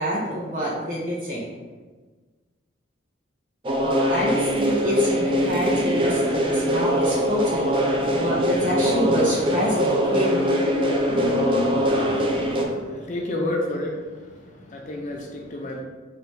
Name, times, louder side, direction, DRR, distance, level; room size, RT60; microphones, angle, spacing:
voice 1, 0.0-1.4 3.8-7.7 8.1-10.5, equal, 40° right, -5 dB, 1.3 m, -27 dB
sound 1, 3.6-12.6, equal, 25° right, 0.3 m, -22 dB
sound 2, 5.3-6.7 7.1-7.2 7.6-7.7 7.9-9.8 10.1-10.4 10.9-13.0, left 2 dB, 85° left, 0.7 m, -33 dB
voice 2, 12.5-15.8, left 1 dB, 40° left, 0 dB, 0.4 m, -31 dB
3.2 x 2.7 x 4.5 m, 1.4 s
head